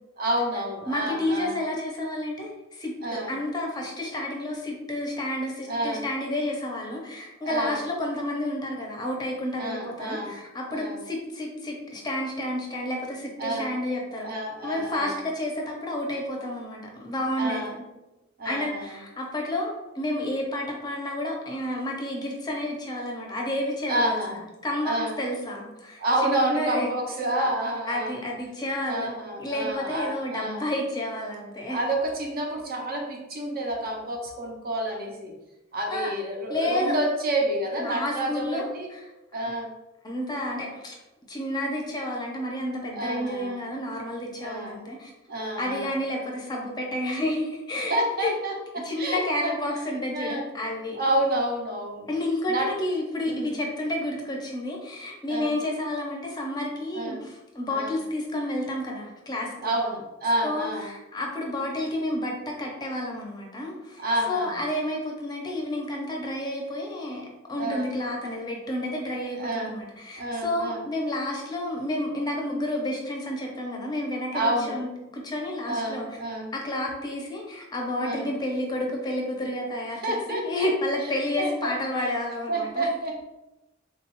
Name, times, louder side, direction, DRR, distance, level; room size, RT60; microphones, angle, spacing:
voice 1, 0.2-1.6 3.0-3.3 5.7-6.0 7.4-7.8 9.6-10.3 10.7-11.0 13.4-13.7 14.2-15.2 17.4-17.7 18.4-18.9 23.9-24.4 24.8-25.2 26.0-28.1 28.9-30.6 31.7-35.3 35.7-38.9 39.3-39.7 42.9-43.7 44.4-44.8 45.3-45.9 47.9-49.6 50.1-50.5 50.9-52.1 52.5-52.7 53.3-53.5 55.3-55.5 56.9-57.2 57.7-58.0 59.6-60.9 64.0-64.6 67.6-67.9 69.4-69.8 70.2-70.8 74.3-74.8 75.7-76.5 78.0-78.3 80.0-80.7 81.4-81.7 82.5-83.2, right 1 dB, 50° right, 1 dB, 0.6 m, -29 dB
voice 2, 0.9-14.3 14.6-17.8 18.4-26.9 27.8-29.1 29.4-31.8 35.9-36.1 36.5-36.9 37.8-39.0 40.0-40.9 41.3-45.1 45.6-48.3 48.8-51.0 52.1-59.7 60.4-76.1 76.5-82.9, left 1 dB, 20° left, 0 dB, 0.5 m, -30 dB
3.6 x 2.3 x 2.9 m, 0.99 s
head